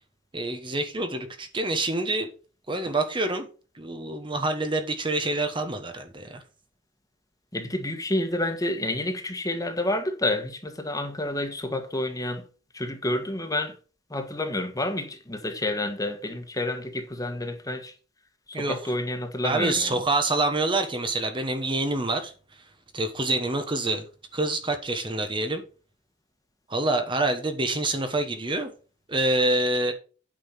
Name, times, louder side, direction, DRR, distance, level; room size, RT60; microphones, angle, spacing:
voice 1, 0.3-2.3 2.7-3.5 3.7-6.4 18.5-18.9 19.4-22.3 22.9-24.0 24.3-25.6 26.7-28.7 29.1-29.9, right 2 dB, 25° right, 1.1 m, -26 dB
voice 2, 7.5-12.4 12.7-13.7 14.1-17.9 18.6-20.0, left 1 dB, 20° left, 1.5 m, -29 dB
8.9 x 5.6 x 5.7 m
head